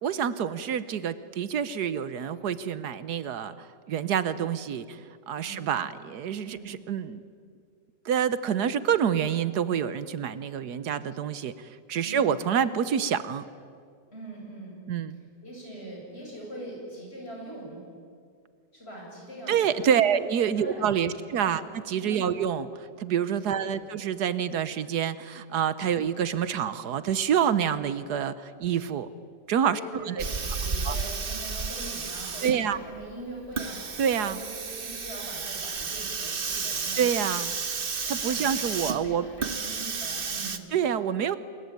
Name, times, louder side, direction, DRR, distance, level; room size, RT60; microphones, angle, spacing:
voice 1, 0.0-5.0 5.3-7.2 8.0-13.4 14.9-15.2 19.5-29.1 29.5-29.8 30.1-30.2 30.8-31.0 32.4-32.8 34.0-34.4 37.0-37.5 38.1-39.2 40.7-41.4, right 8 dB, 75° right, 14 dB, 1.4 m, -27 dB
voice 2, 4.0-4.3 5.4-5.7 6.4-6.7 12.0-12.3 14.1-14.8 15.4-17.8 18.7-20.0 20.5-21.7 22.0-22.4 23.4-24.0 29.7-37.1 37.9-40.7, right 1 dB, 35° left, -2 dB, 8.4 m, -42 dB
Hiss, 30.2-40.6, right 5 dB, 35° right, 1.2 m, -32 dB
27.0 x 22.0 x 9.5 m, 2.2 s
omnidirectional pair, 1.8 m